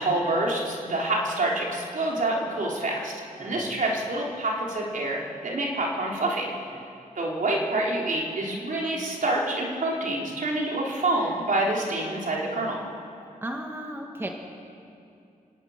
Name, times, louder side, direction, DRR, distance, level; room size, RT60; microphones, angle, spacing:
voice 1, 0.0-3.1 3.4-6.7 7.2-12.8, right 2 dB, 65° right, -2 dB, 4.0 m, -27 dB
voice 2, 3.4-3.8 13.4-14.3, right 1 dB, 15° right, 1 dB, 1.6 m, -35 dB
28.5 x 18.5 x 6.7 m, 2.6 s
wide cardioid pair, 170°, 14 cm